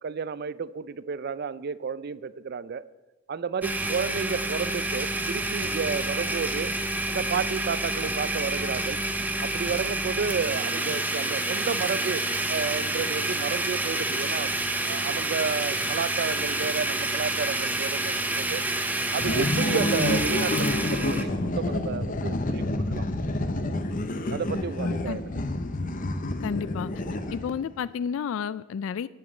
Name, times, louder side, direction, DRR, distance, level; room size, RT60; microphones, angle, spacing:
voice 1, 0.0-2.9 3.3-6.7 7.1-9.0 9.4-14.5 14.8-18.6 19.1-23.1 24.3-25.4, right 5 dB, 50° right, 17 dB, 0.4 m, -31 dB
Domestic sounds home sounds, 3.6-21.2, right 2 dB, 10° right, 0.6 m, -28 dB
sound 1, 19.2-27.7, left 1 dB, 40° left, 0.7 m, -28 dB
voice 2, 24.8-25.2 26.4-26.9 27.3-29.1, left 7 dB, 75° left, 17 dB, 0.3 m, -31 dB
8.0 x 7.2 x 8.5 m, 1.1 s
head